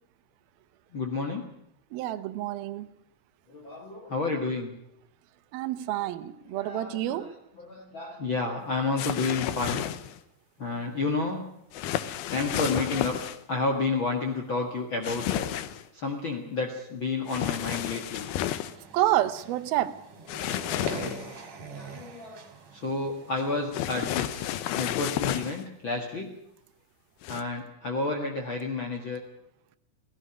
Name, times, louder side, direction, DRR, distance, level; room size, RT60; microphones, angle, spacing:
voice 1, 0.9-1.5 3.5-4.8 6.5-7.3 7.6-9.9 10.6-11.4 12.3-13.2 13.5-15.5 15.9-18.3 21.7-22.4 22.7-26.3 27.3-29.2, left 3 dB, 40° left, 2.0 m, -30 dB
voice 2, 1.9-2.9 5.5-7.3 18.9-20.0, right 13 dB, 85° right, 2.8 m, -28 dB
sound 1, 9.0-10.2 11.7-13.4 15.0-15.8 17.3-18.7 20.3-21.4 23.7-25.6 27.2-27.4, left 12 dB, 90° left, 2.8 m, -31 dB
sound 2, 18.1-24.3, right 3 dB, 50° right, 3.4 m, -44 dB
17.5 x 15.5 x 9.8 m
omnidirectional pair, 4.2 m